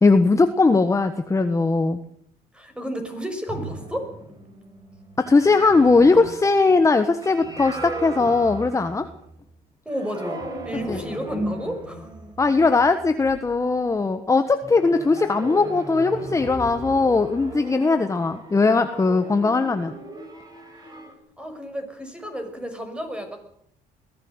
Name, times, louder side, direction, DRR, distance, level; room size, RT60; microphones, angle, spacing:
voice 1, 0.0-2.0 5.2-9.1 10.9-11.0 12.4-19.9, left 3 dB, 20° left, 8 dB, 1.4 m, -19 dB
voice 2, 2.5-4.1 9.9-12.1 21.4-23.4, equal, 5° right, 6 dB, 6.0 m, -32 dB
sound 1, 3.5-9.4 9.9-13.8 14.6-21.1, right 1 dB, 25° right, 6.0 m, -37 dB
22.0 x 16.5 x 8.0 m, 0.68 s
cardioid pair, 110°, 17 cm